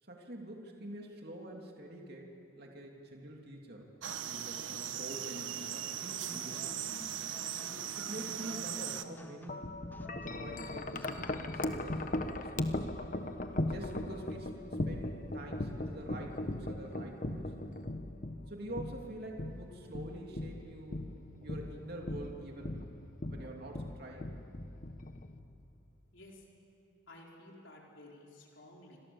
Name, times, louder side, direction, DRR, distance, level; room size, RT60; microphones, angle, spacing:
voice 1, 0.0-3.9 4.2-6.7 7.6-9.7 10.4-12.9 13.7-17.5 18.5-21.0 21.4-22.9 23.3-24.3, right 1 dB, 50° right, 0 dB, 3.0 m, -46 dB
sound 1, 4.0-9.0, right 9 dB, 75° right, 1.3 m, -39 dB
sound 2, 6.3-11.6, left 1 dB, 10° left, 0.7 m, -54 dB
Wind chime, 9.5-25.7, left 1 dB, 40° left, 1.2 m, -38 dB
voice 2, 26.1-26.4 27.1-29.0, left 1 dB, 65° left, -2 dB, 4.4 m, -54 dB
28.5 x 26.0 x 7.2 m, 2.7 s
head